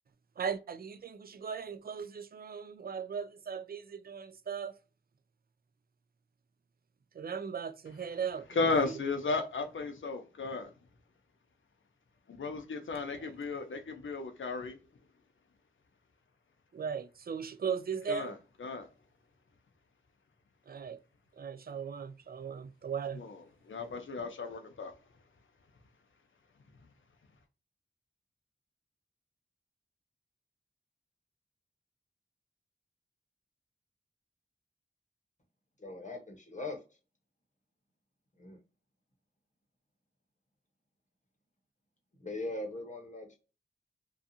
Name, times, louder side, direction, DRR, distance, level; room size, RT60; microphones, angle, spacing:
voice 1, 0.4-4.8 7.1-9.0 13.1-13.3 16.7-18.3 20.7-21.0 21.4-23.2, right 6 dB, 50° right, 0.4 m, -38 dB
voice 2, 8.6-10.7 12.3-14.8 18.1-18.3 18.6-18.9 23.2-23.4 23.7-24.9, left 3 dB, 80° left, 0.6 m, -34 dB
voice 3, 35.8-36.8 38.4-38.6 42.2-43.4, left 2 dB, 40° left, 0.9 m, -40 dB
2.5 x 2.4 x 2.6 m
wide cardioid pair, 65°, 20 cm